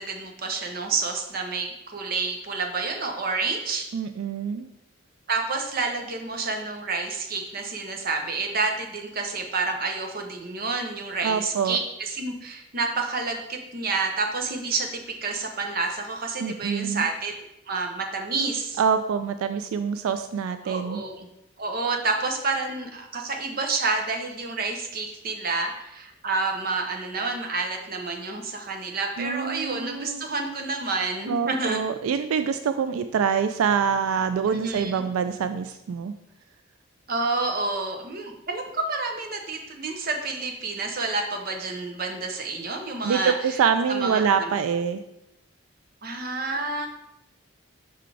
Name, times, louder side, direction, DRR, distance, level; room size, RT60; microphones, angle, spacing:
voice 1, 0.0-3.9 5.3-17.4 17.7-18.8 20.6-21.3 21.6-31.8 34.5-35.0 37.1-43.6 43.9-44.5 46.0-46.9, right 3 dB, 45° right, 3 dB, 0.8 m, -29 dB
voice 2, 3.9-4.7 11.2-11.8 16.4-17.1 18.8-21.0 29.2-30.3 31.3-36.1 43.0-45.0, right 6 dB, 85° right, 10 dB, 0.3 m, -25 dB
5.5 x 4.0 x 4.8 m, 0.85 s
head